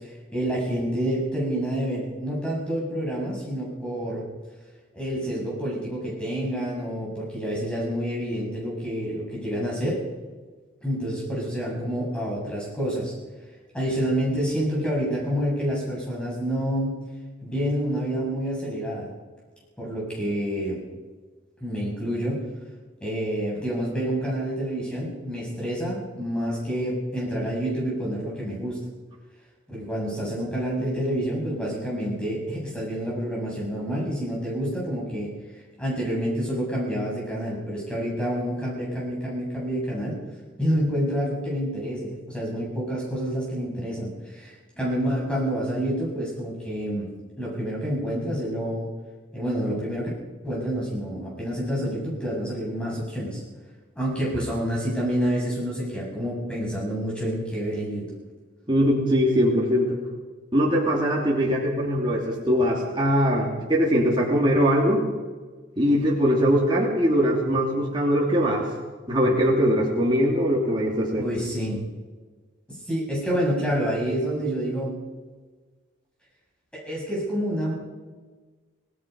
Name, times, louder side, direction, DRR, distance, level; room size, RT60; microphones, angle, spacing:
voice 1, 0.0-4.2 4.9-10.0 10.8-13.1 13.7-17.0 17.4-19.1 19.8-20.8 21.6-22.4 23.0-28.8 29.7-35.3 35.8-40.2 40.6-47.1 47.4-48.9 49.3-50.1 50.4-53.4 53.9-58.1 71.2-71.8 72.7-74.9 76.7-77.7, equal, 5° left, -4 dB, 7.7 m, -28 dB
voice 2, 58.7-60.0 60.5-65.1 65.8-68.6 69.1-71.2, equal, 25° right, -4 dB, 3.1 m, -21 dB
26.0 x 18.5 x 5.4 m, 1.4 s
head